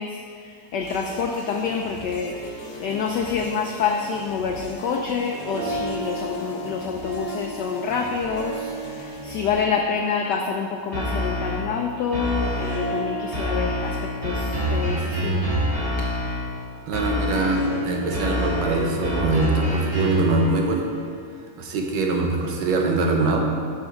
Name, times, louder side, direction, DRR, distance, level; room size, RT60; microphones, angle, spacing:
voice 1, 0.0-15.4, left 5 dB, 85° left, 3 dB, 0.9 m, -27 dB
sound 1, 0.8-9.6, left 2 dB, 65° left, 1.4 m, -41 dB
Harp, 2.1-21.9, right 2 dB, 85° right, 2.7 m, -36 dB
sound 2, 10.9-11.7 12.1-12.9 13.3-16.5 16.9-17.7 18.1-20.3, equal, 15° right, 1.9 m, -26 dB
voice 2, 16.9-20.8 21.6-23.4, right 2 dB, 70° right, 1 dB, 1.6 m, -23 dB
9.3 x 6.2 x 3.8 m, 2.2 s
omnidirectional pair, 2.4 m